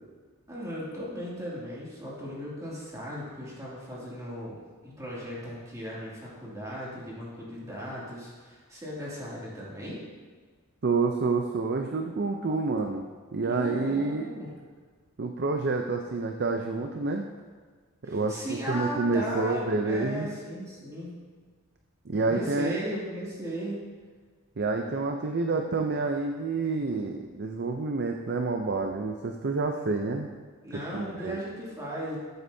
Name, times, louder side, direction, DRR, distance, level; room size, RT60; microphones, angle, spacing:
voice 1, 0.5-10.0 12.5-13.0 13.5-14.5 18.0-21.1 22.2-23.8 30.6-32.2, equal, 15° right, -6 dB, 2.5 m, -37 dB
voice 2, 10.8-13.0 13.3-14.3 15.2-17.3 18.0-20.3 22.1-22.8 24.6-30.3 30.9-31.4, right 3 dB, 50° right, 3 dB, 0.5 m, -28 dB
13.5 x 7.9 x 2.7 m, 1.6 s
head